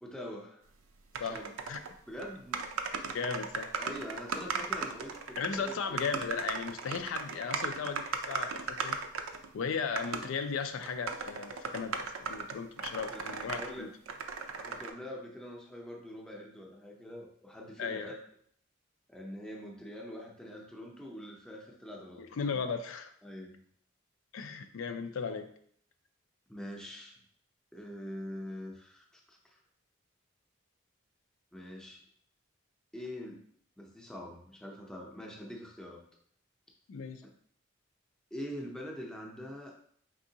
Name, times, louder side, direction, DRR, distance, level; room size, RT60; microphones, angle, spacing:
voice 1, 0.0-0.6 1.2-1.5 2.1-2.6 3.8-6.1 13.1-13.9 14.6-18.1 19.1-22.6 23.2-23.6 26.5-27.2 27.7-29.6 31.5-32.0 32.9-33.4 33.8-36.0 38.3-39.7, equal, 5° left, -1 dB, 0.6 m, -44 dB
sound 1, 1.1-1.9 2.2-2.3 2.5-9.5 10.0-10.3 10.8-13.7 14.1-14.9, right 5 dB, 90° right, 0.5 m, -37 dB
voice 2, 1.2-1.8 3.1-3.7 5.4-9.0 9.5-13.9 17.8-18.1 22.2-23.1 24.3-25.5 36.9-37.2, left 5 dB, 80° left, 8 dB, 0.4 m, -36 dB
4.5 x 3.6 x 2.8 m, 0.62 s
head